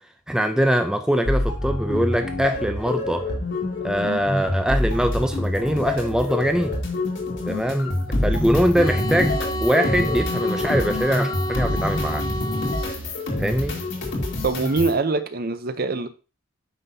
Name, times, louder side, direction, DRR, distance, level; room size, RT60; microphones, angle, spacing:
voice 1, 0.3-3.2 3.8-6.8 7.5-7.9 8.2-12.2 13.4-13.8, equal, 5° right, 0.5 m, -22 dB
sound 1, 1.2-15.0, left 1 dB, 65° left, 2.0 m, -26 dB
sound 2, 8.8-13.0, equal, 25° left, 1.0 m, -30 dB
voice 2, 14.4-16.1, right 3 dB, 50° right, 0.7 m, -23 dB
9.0 x 5.9 x 2.7 m
head